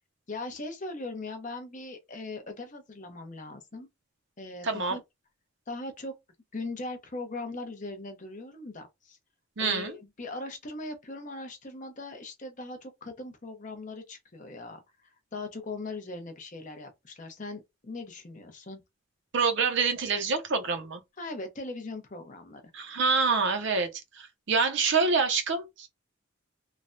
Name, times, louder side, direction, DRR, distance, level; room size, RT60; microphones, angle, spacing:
voice 1, 0.3-3.9 4.4-5.0 5.7-6.1 6.5-9.2 9.6-14.8 15.3-18.8 21.2-22.6, left 2 dB, 35° left, 0.7 m, -39 dB
voice 2, 4.6-5.0 9.6-10.0 19.3-21.0 22.7-25.9, right 4 dB, 55° right, 0.5 m, -26 dB
3.2 x 2.2 x 2.5 m
head